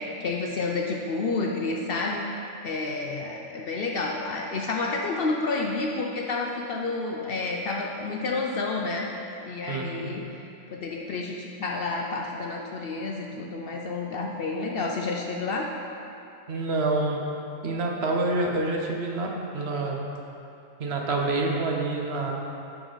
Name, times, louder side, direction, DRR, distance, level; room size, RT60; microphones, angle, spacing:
voice 1, 0.0-2.2 2.6-9.1 9.5-15.7, left 3 dB, 60° left, 0 dB, 0.7 m, -30 dB
voice 2, 9.7-10.2 16.5-17.2 17.6-20.0 20.8-22.3, right 2 dB, 60° right, 0 dB, 1.0 m, -27 dB
7.9 x 6.2 x 3.9 m, 2.7 s
omnidirectional pair, 1.3 m